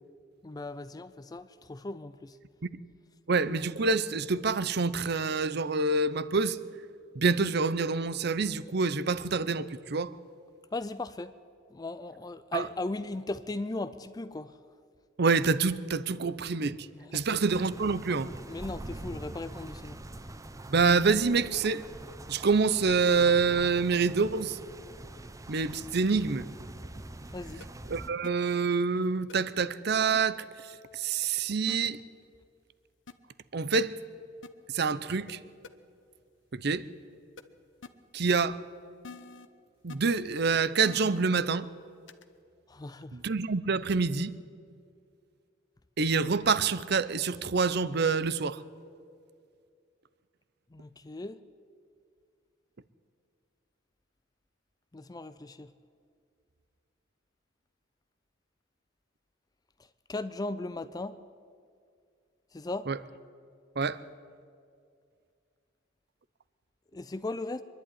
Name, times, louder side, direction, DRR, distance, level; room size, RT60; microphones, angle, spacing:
voice 1, 0.4-2.4 10.7-11.3 11.7-14.5 17.1-17.2 18.5-20.0 27.3-27.7 42.7-43.2 50.7-51.4 54.9-55.7 60.1-61.2 62.5-62.9 66.9-67.6, left 2 dB, 20° left, 0.4 m, -37 dB
voice 2, 3.3-6.6 7.1-10.2 12.5-12.7 15.2-16.9 17.1-18.3 20.7-21.9 22.3-24.6 25.5-26.5 27.9-32.0 33.5-34.0 34.7-35.4 36.5-36.9 38.1-38.6 39.8-41.7 43.1-44.3 46.0-48.6 62.9-63.0 63.8-64.0, right 4 dB, 55° right, 0.7 m, -27 dB
sound 1, 17.5-28.1, right 1 dB, 15° right, 0.7 m, -44 dB
sound 2, 26.1-26.2 27.6-27.7 28.2-28.3 29.3-29.4 30.1-30.2 31.7-31.8 33.1-33.2 34.4-34.5 35.3-35.4 35.6-35.7 37.4-37.5 37.8-37.9 39.0-39.5 39.9-40.0 40.8-41.2 42.1-42.2, left 4 dB, 70° left, 1.0 m, -45 dB
24.5 x 11.5 x 9.9 m
head